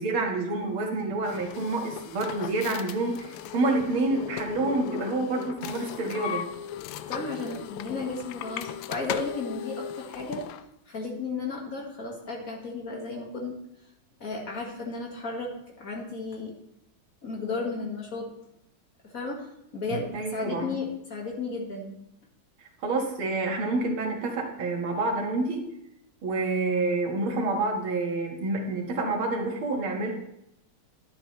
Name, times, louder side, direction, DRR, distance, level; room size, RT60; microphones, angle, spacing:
voice 1, 0.0-6.4 20.1-20.8 22.8-25.6 26.2-30.1, right 2 dB, 80° right, 1 dB, 2.4 m, -28 dB
sound 1, 1.2-10.7, left 10 dB, 90° left, 1.4 m, -37 dB
voice 2, 7.1-10.4 10.9-13.6 14.2-15.5 15.8-16.5 17.2-18.3 19.0-19.4 19.7-21.9, left 3 dB, 45° left, -1 dB, 2.0 m, -34 dB
12.0 x 9.3 x 3.1 m, 0.81 s
omnidirectional pair, 2.3 m